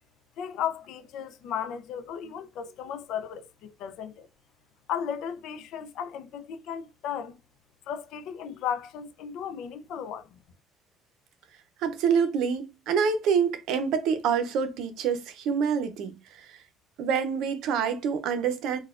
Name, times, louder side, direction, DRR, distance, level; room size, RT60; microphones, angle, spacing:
voice 1, 0.4-4.3 4.9-7.4 7.9-10.4, left 8 dB, 70° left, 0.4 m, -35 dB
voice 2, 11.8-16.6 17.0-18.8, right 6 dB, 75° right, 0.5 m, -26 dB
4.1 x 2.2 x 2.4 m
cardioid pair, 120°, 0 cm